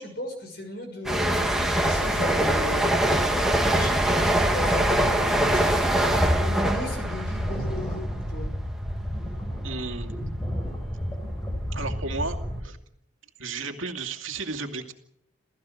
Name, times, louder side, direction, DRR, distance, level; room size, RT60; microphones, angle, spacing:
voice 1, 0.0-2.9 3.3-5.8 6.4-8.5, left 1 dB, 50° left, 5 dB, 6.5 m, -36 dB
sound 1, 1.0-8.5 8.8-9.1, right 1 dB, ahead, 2.2 m, -23 dB
sound 2, 3.3-12.6, equal, 15° left, 4.8 m, -31 dB
voice 2, 9.6-10.1 11.7-12.8 13.4-14.9, right 3 dB, 75° right, 5 dB, 2.4 m, -33 dB
28.5 x 15.0 x 6.5 m, 0.75 s
head